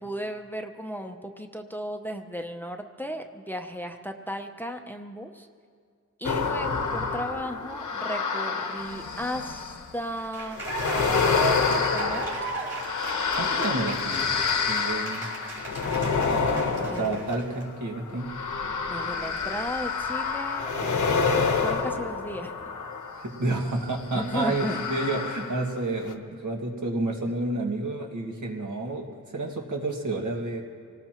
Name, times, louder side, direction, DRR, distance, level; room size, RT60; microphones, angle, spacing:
voice 1, 0.0-5.5 6.2-10.7 10.9-12.3 16.6-17.2 18.9-22.6 24.1-24.8 27.3-27.4, equal, 5° left, 5 dB, 0.6 m, -35 dB
sound 1, 6.2-9.9 10.6-23.4 24.2-25.8 26.1-26.2, left 5 dB, 80° left, 1.1 m, -28 dB
Cheering / Applause, 10.1-17.6, right 2 dB, 55° right, 4.1 m, -35 dB
voice 2, 13.4-14.4 14.7-15.3 16.8-18.3 23.1-30.6, right 2 dB, 75° right, 1 dB, 1.9 m, -30 dB
25.5 x 19.0 x 3.0 m, 2.1 s
wide cardioid pair, 135°, 30 cm